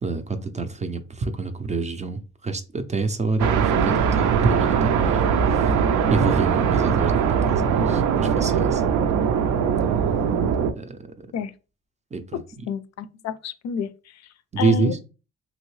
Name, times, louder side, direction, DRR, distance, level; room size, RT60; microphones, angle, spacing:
voice 1, 0.0-5.7 6.1-8.8 10.8-11.3 12.1-12.7 14.5-15.0, right 3 dB, 25° right, 0.4 m, -27 dB
sound 1, 3.4-10.7, right 7 dB, 75° right, 0.5 m, -21 dB
voice 2, 12.7-13.9 14.6-15.0, left 7 dB, 60° left, 0.4 m, -29 dB
2.9 x 2.7 x 3.1 m
cardioid pair, 90°, 30 cm